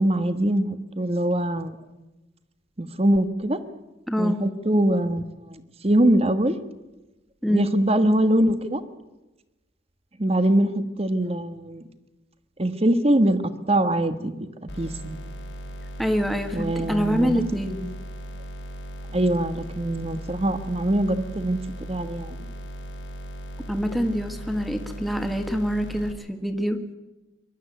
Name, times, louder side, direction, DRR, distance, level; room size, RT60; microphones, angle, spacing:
voice 1, 0.0-1.8 2.8-3.6 4.2-6.6 7.5-8.8 10.2-11.8 12.6-14.5 14.8-15.2 16.5-17.4 19.1-21.6 21.9-22.5, right 1 dB, 30° right, 11 dB, 1.4 m, -23 dB
voice 2, 4.1-4.4 7.4-7.7 16.0-17.9 23.7-26.8, equal, ahead, 5 dB, 1.7 m, -25 dB
sound 1, 14.7-26.1, equal, 75° left, 3.9 m, -37 dB
23.0 x 12.5 x 9.2 m, 1.1 s
head